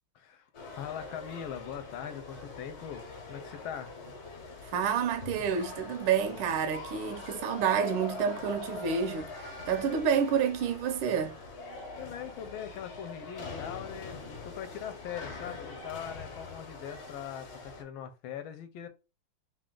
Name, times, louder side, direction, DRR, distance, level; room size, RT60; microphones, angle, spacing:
voice 1, 0.1-3.9 12.0-18.9, left 9 dB, 80° left, 1.4 m, -41 dB
sound 1, 0.5-17.8, left 3 dB, 55° left, 1.3 m, -43 dB
voice 2, 4.7-11.4, right 7 dB, 80° right, 1.5 m, -29 dB
3.7 x 2.4 x 3.7 m
omnidirectional pair, 2.3 m